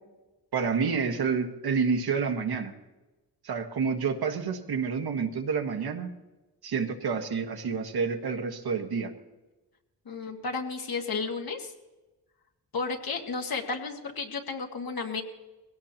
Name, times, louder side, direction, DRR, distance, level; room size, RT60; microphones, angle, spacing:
voice 1, 0.5-2.7 3.4-6.1 6.6-9.1, right 5 dB, 65° right, 4 dB, 1.6 m, -29 dB
voice 2, 10.1-11.7 12.7-15.2, left 4 dB, 60° left, 2 dB, 2.1 m, -33 dB
21.0 x 17.0 x 3.0 m, 1.1 s
cardioid pair, 70°, 40 cm